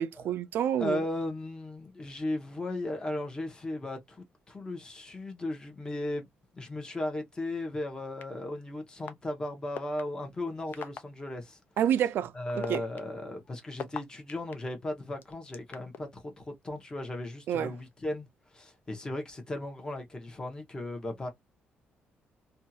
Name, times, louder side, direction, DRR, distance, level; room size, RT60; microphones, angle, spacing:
voice 1, 0.0-1.0 11.8-12.8 17.5-17.7, right 10 dB, 70° right, 0.4 m, -29 dB
voice 2, 0.8-6.2 6.5-11.6 12.3-21.3, left 1 dB, 20° left, 1.0 m, -36 dB
sound 1, 8.2-8.3 9.1-9.2 9.8-10.0 10.7-11.0 11.8-11.9 12.5-14.5 15.2-16.0, left 7 dB, 55° left, 0.6 m, -38 dB
2.7 x 2.3 x 2.7 m
cardioid pair, 130°, 4 cm